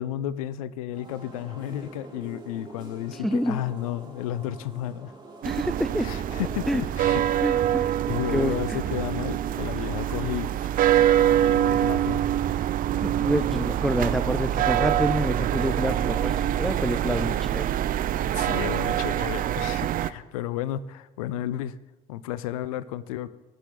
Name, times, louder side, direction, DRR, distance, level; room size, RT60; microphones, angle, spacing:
voice 1, 0.0-5.1 6.0-7.6 8.1-10.5 10.8-12.2 18.3-21.8 22.1-23.3, left 12 dB, 85° left, 18 dB, 0.5 m, -33 dB
sound 1, 0.9-11.6, right 2 dB, 25° right, 3.3 m, -44 dB
voice 2, 3.2-3.6 5.4-6.1 6.7-6.8 7.4-7.9 8.3-8.8 13.0-17.7, equal, ahead, 10 dB, 0.6 m, -27 dB
sound 2, 5.4-20.1, right 11 dB, 55° right, 0.5 m, -25 dB
20.0 x 6.9 x 3.8 m, 1.1 s
hypercardioid pair, 55°, 17 cm